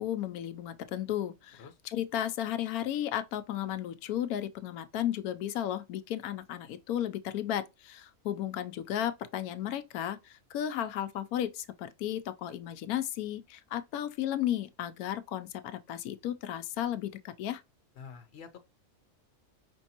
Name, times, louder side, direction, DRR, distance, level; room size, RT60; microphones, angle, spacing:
voice 1, 0.0-17.6, left 11 dB, 90° left, 1.1 m, -34 dB
voice 2, 17.9-18.6, left 6 dB, 50° left, 1.0 m, -47 dB
5.3 x 3.3 x 2.8 m
omnidirectional pair, 1.5 m